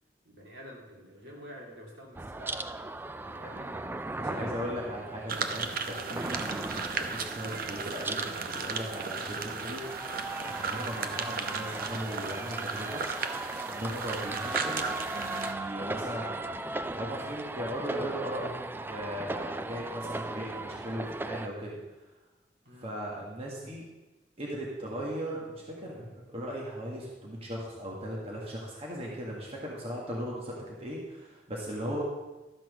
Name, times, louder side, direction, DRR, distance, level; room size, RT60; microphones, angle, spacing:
voice 1, 0.2-2.7 3.2-4.6 11.0-11.2 22.6-22.9, equal, 75° right, -3 dB, 3.1 m, -48 dB
sound 1, 2.1-21.5, right 2 dB, 10° right, 0.4 m, -38 dB
voice 2, 4.2-9.8 10.1-13.0 13.7-14.8 15.1-21.8 22.8-23.9 24.4-32.0, equal, 35° right, -3 dB, 1.8 m, -38 dB
sound 2, 5.3-15.5, right 5 dB, 55° right, 0.8 m, -35 dB
12.5 x 6.1 x 6.2 m, 1.1 s
head